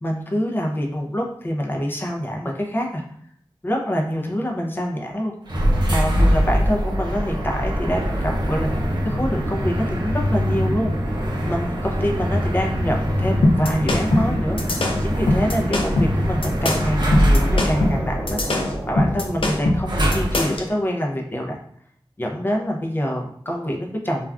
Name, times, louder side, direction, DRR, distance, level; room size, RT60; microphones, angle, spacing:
voice 1, 0.0-3.0 3.6-5.3 5.9-10.9 11.5-14.7 15.0-21.6 22.2-24.3, equal, 25° left, 0 dB, 0.5 m, -26 dB
sound 1, 5.5-20.6, equal, 55° right, 0.6 m, -23 dB
sound 2, 13.4-20.7, left 2 dB, 75° left, 0.5 m, -21 dB
2.4 x 2.3 x 3.3 m, 0.64 s
wide cardioid pair, 80°, 9 cm